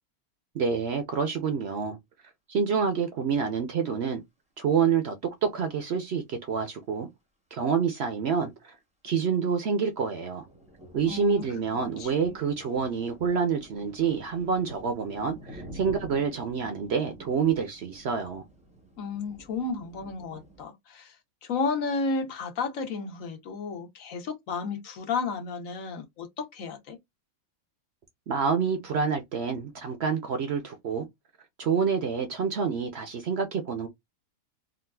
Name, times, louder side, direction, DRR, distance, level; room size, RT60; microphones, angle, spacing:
voice 1, 0.5-2.0 2.5-4.2 4.6-7.1 7.5-8.8 9.0-10.4 10.9-18.4 28.3-31.1 31.6-33.9, right 6 dB, 60° right, 0.8 m, -27 dB
sound 1, 9.9-20.7, right 1 dB, 5° right, 0.5 m, -49 dB
voice 2, 11.1-11.4 12.0-12.1 19.0-21.1 21.4-27.0, left 4 dB, 70° left, 1.2 m, -32 dB
3.8 x 2.4 x 2.3 m
omnidirectional pair, 1.5 m